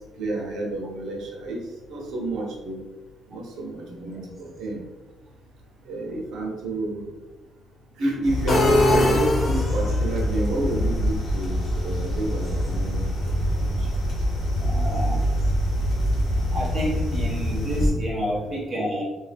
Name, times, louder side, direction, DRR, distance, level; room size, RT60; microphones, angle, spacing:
voice 1, 0.2-1.6 1.9-2.8 3.3-4.8 5.9-7.0 8.0-13.4 13.7-13.9 14.6-14.7, right 2 dB, 75° right, -1 dB, 0.8 m, -30 dB
voice 2, 3.8-4.2 14.6-15.2 16.5-19.0, equal, 25° right, -5 dB, 0.8 m, -29 dB
sound 1, 8.2-17.9, equal, 50° left, 0.9 m, -25 dB
sound 2, 8.5-10.1, left 1 dB, 30° left, 0.5 m, -20 dB
2.8 x 2.7 x 3.3 m, 1.2 s
cardioid pair, 165°, 0 cm